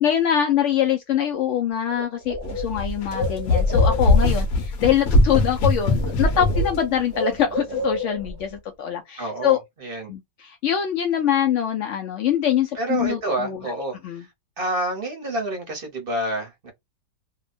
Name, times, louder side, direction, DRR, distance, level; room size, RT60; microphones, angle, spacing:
voice 1, 0.0-9.6 10.1-13.8 14.0-14.3, left 9 dB, 80° left, 0.6 m, -24 dB
Bird, 1.5-1.6 1.9-4.4 5.5-5.7 6.0-8.4, left 2 dB, 90° right, 0.4 m, -30 dB
sound 1, 2.4-6.8, left 2 dB, 65° left, 1.0 m, -21 dB
voice 2, 9.2-10.1 12.7-14.3 14.6-16.7, right 1 dB, 40° right, 0.9 m, -28 dB
2.8 x 2.2 x 2.4 m
omnidirectional pair, 1.9 m